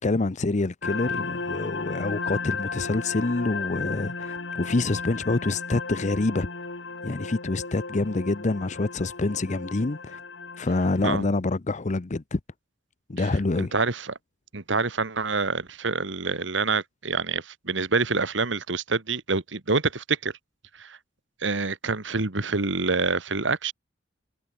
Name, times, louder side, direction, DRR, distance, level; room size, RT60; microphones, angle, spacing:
voice 1, 0.0-6.5 7.0-10.2 10.6-12.4 13.1-13.7, left 2 dB, 40° left, 0.7 m, -26 dB
sound 1, 0.8-11.1, left 4 dB, 70° left, 2.4 m, -34 dB
voice 2, 13.7-14.1 14.5-20.3 20.8-21.0 21.4-23.7, right 4 dB, 70° right, 1.8 m, -26 dB
head